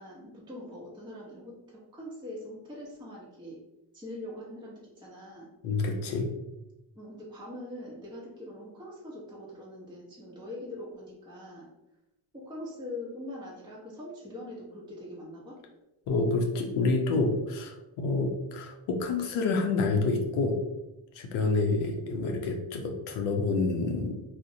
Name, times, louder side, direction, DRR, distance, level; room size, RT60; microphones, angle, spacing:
voice 1, 0.0-3.6 3.9-5.5 7.0-11.7 12.3-15.6, left 1 dB, 10° right, -5 dB, 0.8 m, -43 dB
voice 2, 5.6-6.3 16.1-20.6 21.1-24.2, left 3 dB, 90° left, 3 dB, 0.5 m, -28 dB
2.5 x 2.1 x 2.6 m, 0.96 s
supercardioid pair, 60°, 47 cm